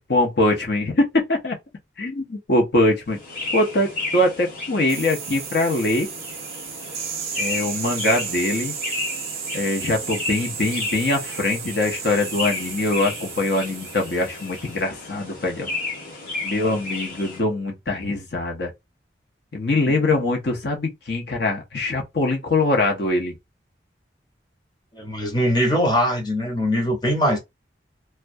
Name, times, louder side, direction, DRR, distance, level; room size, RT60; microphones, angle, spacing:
voice 1, 0.1-1.6 2.0-3.2 3.5-6.1 7.4-8.7 9.5-15.7 16.4-18.7 19.5-23.3, left 2 dB, 65° left, 0.7 m, -22 dB
sound 1, 3.1-17.4, left 3 dB, 45° left, 1.2 m, -33 dB
sound 2, 4.9-14.8, right 7 dB, 55° right, 0.6 m, -34 dB
voice 2, 24.9-27.4, equal, 20° left, 0.7 m, -22 dB
2.2 x 2.2 x 2.5 m
head